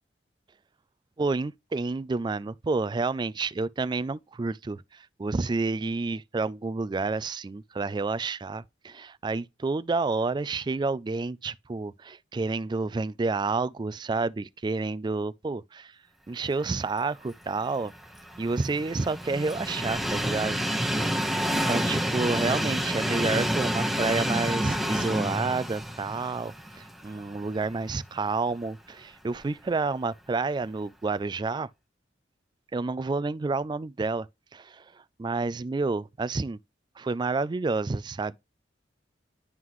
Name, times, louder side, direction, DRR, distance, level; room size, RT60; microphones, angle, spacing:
voice 1, 1.2-4.8 5.2-15.9 16.3-17.9 18.4-20.6 21.5-31.7 32.7-34.3 34.5-34.8 35.2-36.6 37.0-38.4, right 3 dB, 25° right, 0.3 m, -29 dB
Train, 17.6-27.7 28.2-28.3 29.4-29.5, equal, ahead, 1.0 m, -29 dB
11.0 x 3.8 x 3.0 m
head